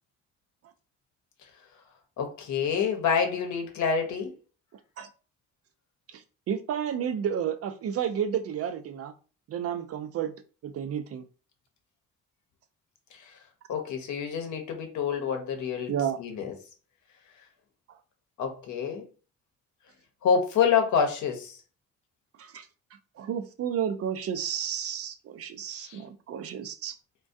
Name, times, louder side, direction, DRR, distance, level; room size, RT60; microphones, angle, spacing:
voice 1, 2.2-4.3 13.7-15.9 16.2-16.5 18.4-19.0 20.2-21.6 25.7-26.0, left 6 dB, 70° left, 0.8 m, -27 dB
voice 2, 6.5-9.1 9.5-10.3 10.6-11.2 15.9-16.2 22.4-22.7 23.2-26.9, right 8 dB, 50° right, 0.4 m, -31 dB
2.3 x 2.2 x 2.6 m
cardioid pair, 90°, 30 cm